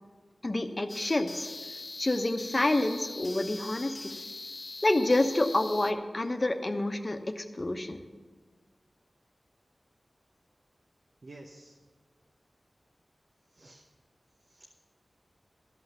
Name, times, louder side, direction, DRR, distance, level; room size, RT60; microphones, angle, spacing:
voice 1, 0.4-1.5 2.0-4.1 4.8-8.0, left 2 dB, 40° left, 7 dB, 1.0 m, -28 dB
sound 1, 0.9-5.9, left 3 dB, 55° left, 0.5 m, -42 dB
voice 2, 11.2-11.8 13.5-13.8 14.5-14.8, right 2 dB, 70° right, 1 dB, 0.9 m, -51 dB
13.0 x 5.8 x 8.0 m, 1.5 s
cardioid pair, 45°, 0 cm